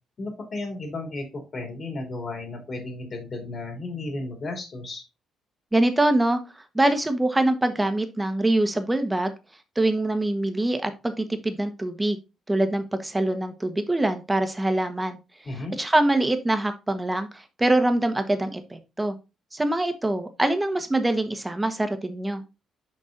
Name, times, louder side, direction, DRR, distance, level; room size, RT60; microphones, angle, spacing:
voice 1, 0.2-5.0 15.4-15.8, left 2 dB, 45° left, 2 dB, 3.1 m, -34 dB
voice 2, 5.7-6.4 6.7-9.3 9.7-12.2 12.5-15.2 15.5-19.2 19.5-22.4, right 1 dB, 15° right, 8 dB, 1.3 m, -24 dB
6.6 x 5.3 x 3.9 m, 0.27 s
cardioid pair, 90°, 0 cm